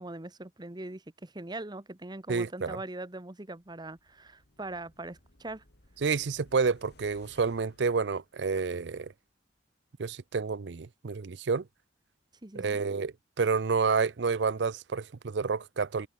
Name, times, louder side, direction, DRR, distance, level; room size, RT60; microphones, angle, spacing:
voice 1, 0.0-5.6 12.4-12.8, right 2 dB, 25° right, 1.2 m, -41 dB
voice 2, 2.3-2.8 6.0-9.1 10.0-11.6 12.6-16.1, right 5 dB, 75° right, 0.6 m, -29 dB
sound 1, 3.6-8.8 9.2-9.3, left 1 dB, 65° left, 3.3 m, -60 dB
head